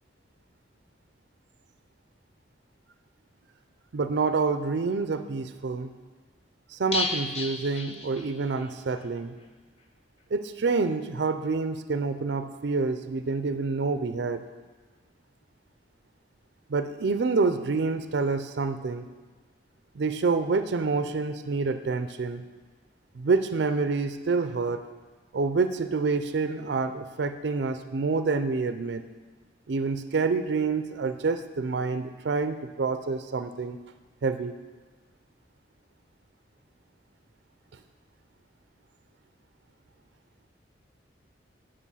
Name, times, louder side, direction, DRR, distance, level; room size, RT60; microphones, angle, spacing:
voice 1, 3.9-5.9 6.7-9.4 10.3-14.4 16.7-19.1 19.9-22.4 23.1-24.8 25.3-29.1 29.7-33.8 34.2-34.5, right 4 dB, 70° right, 10 dB, 0.4 m, -27 dB
sound 1, 6.9-8.7 9.0-9.1 9.4-9.5, left 3 dB, 35° left, 0.7 m, -33 dB
9.6 x 5.0 x 5.6 m, 1.4 s
head